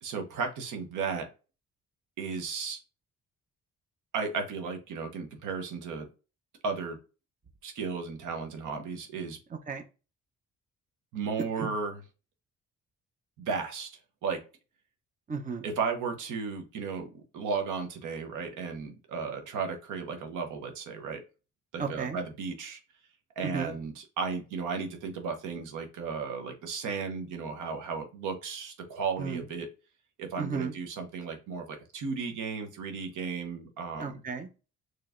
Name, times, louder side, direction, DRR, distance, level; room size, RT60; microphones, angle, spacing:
voice 1, 0.0-1.3 2.2-2.8 4.1-6.1 6.6-7.0 7.6-9.4 11.1-12.0 13.4-13.9 14.2-14.4 15.6-21.2 21.7-22.8 23.4-29.7 30.2-34.2, right 5 dB, 85° right, 5 dB, 0.9 m, -34 dB
voice 2, 15.3-15.6 21.8-22.2 23.5-23.7 29.2-29.4 30.4-30.7 34.0-34.5, right 5 dB, 25° right, 6 dB, 0.7 m, -34 dB
4.7 x 3.1 x 2.5 m, 0.33 s
cardioid pair, 90°, 30 cm